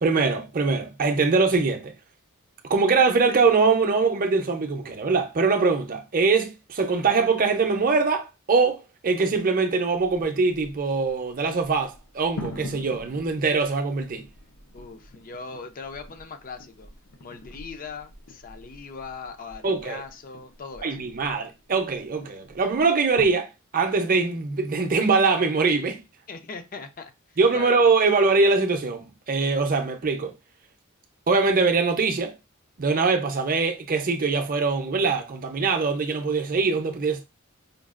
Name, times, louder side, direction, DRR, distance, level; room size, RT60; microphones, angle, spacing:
voice 1, 0.0-1.9 2.7-14.2 19.6-20.0 20.8-26.0 27.4-30.3 31.3-32.3 32.8-37.2, right 4 dB, 40° right, 0.6 m, -23 dB
sound 1, 10.0-23.3, left 2 dB, 75° left, 0.7 m, -45 dB
voice 2, 14.7-16.9 17.2-21.0 26.3-27.1 27.5-27.8, left 4 dB, 40° left, 0.5 m, -40 dB
5.2 x 2.4 x 2.4 m
head